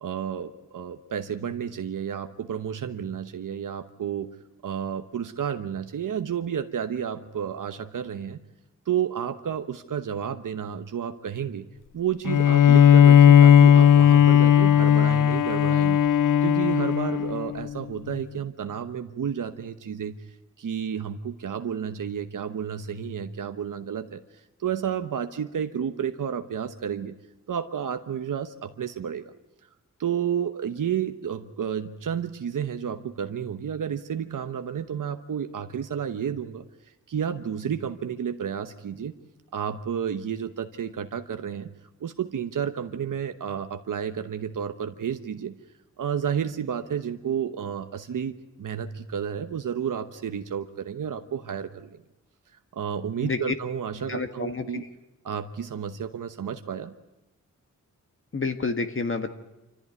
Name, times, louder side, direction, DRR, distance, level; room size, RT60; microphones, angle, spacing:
voice 1, 0.0-4.3 4.6-8.4 8.9-11.7 11.9-16.0 16.4-20.2 20.6-24.2 24.6-27.2 27.5-29.3 30.0-36.6 37.1-39.1 39.5-41.7 42.0-45.5 46.0-52.0 52.7-54.8 55.2-56.9, right 8 dB, 75° right, 8 dB, 1.1 m, -31 dB
Bowed string instrument, 12.2-17.7, left 9 dB, 75° left, 0.7 m, -16 dB
voice 2, 53.2-53.5 54.1-54.9 58.3-59.3, left 4 dB, 40° left, 7 dB, 1.4 m, -29 dB
26.5 x 14.5 x 9.5 m, 0.99 s
wide cardioid pair, 110°, 32 cm